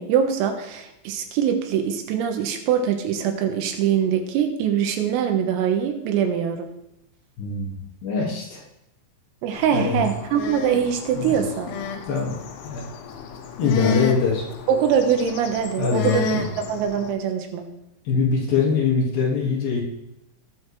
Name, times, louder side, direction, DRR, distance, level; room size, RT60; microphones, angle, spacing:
voice 1, 0.0-6.7 9.4-11.7 14.7-17.7, right 8 dB, 90° right, 4 dB, 4.1 m, -23 dB
voice 2, 7.4-8.6 9.7-10.0 11.1-11.4 12.1-12.4 12.6-12.8 13.6-14.5 15.8-16.5 18.0-19.8, left 5 dB, 55° left, -3 dB, 3.3 m, -23 dB
sound 1, 9.5-17.1, left 5 dB, 85° left, 3.9 m, -31 dB
20.0 x 9.2 x 3.3 m, 0.89 s
omnidirectional pair, 5.8 m